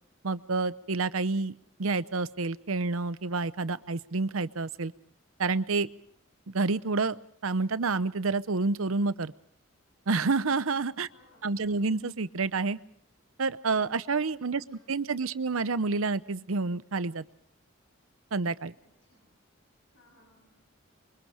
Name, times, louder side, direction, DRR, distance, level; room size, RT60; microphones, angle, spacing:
voice 1, 0.2-4.9 5.4-5.9 6.5-7.2 7.4-9.3 10.1-11.1 11.4-12.8 13.4-17.2 18.3-18.7, right 3 dB, 90° right, 15 dB, 0.8 m, -29 dB
voice 2, 11.1-12.0 14.3-15.5 18.8-19.4 19.9-20.6, left 1 dB, 65° left, 1 dB, 6.9 m, -64 dB
26.5 x 24.0 x 5.0 m, 0.63 s
head